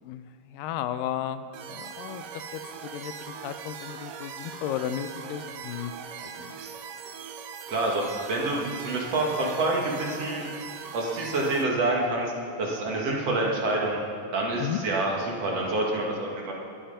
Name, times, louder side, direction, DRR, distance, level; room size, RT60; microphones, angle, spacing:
voice 1, 0.0-5.9 6.2-6.6 14.6-14.8, left 10 dB, 90° left, 11 dB, 2.3 m, -34 dB
sound 1, 1.5-11.6, right 7 dB, 90° right, 1.2 m, -40 dB
voice 2, 7.7-10.5 10.9-12.3 12.6-14.0 14.3-16.5, right 2 dB, 50° right, -2 dB, 3.0 m, -27 dB
21.5 x 9.1 x 5.7 m, 2.6 s
omnidirectional pair, 3.9 m